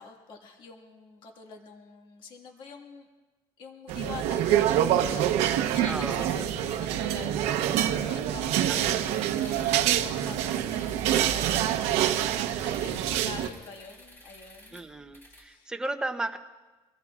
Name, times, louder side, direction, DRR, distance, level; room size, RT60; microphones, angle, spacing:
voice 1, 0.0-3.1 3.6-9.5 9.7-12.0 12.6-14.8 15.4-15.7, left 4 dB, 45° left, 2 dB, 1.9 m, -45 dB
sound 1, 3.9-13.5, right 11 dB, 85° right, 1.0 m, -26 dB
voice 2, 5.9-6.3 8.1-8.8 14.7-16.4, right 2 dB, 5° right, 6 dB, 0.8 m, -35 dB
sound 2, 8.7-15.5, left 1 dB, 20° left, 2.6 m, -51 dB
25.0 x 21.0 x 2.5 m, 1.2 s
cardioid pair, 160°, 11 cm